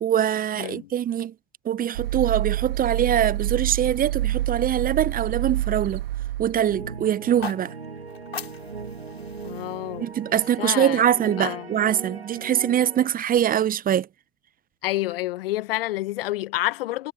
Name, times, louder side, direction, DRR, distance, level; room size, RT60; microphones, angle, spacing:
voice 1, 0.0-1.3 1.6-6.0 6.4-7.7 10.0-14.1, right 10 dB, 30° right, 0.8 m, -23 dB
voice 2, 0.6-0.9 9.4-10.1 10.6-11.0 11.4-11.7 14.8-17.1, left 17 dB, 70° left, 1.0 m, -28 dB
sound 1, 1.9-6.8, right 14 dB, 70° right, 1.5 m, -27 dB
sound 2, 6.7-13.1, right 4 dB, 90° right, 6.2 m, -38 dB
sound 3, 7.2-11.3, left 6 dB, 85° left, 4.1 m, -41 dB
figure-of-eight pair, 75°, 30 cm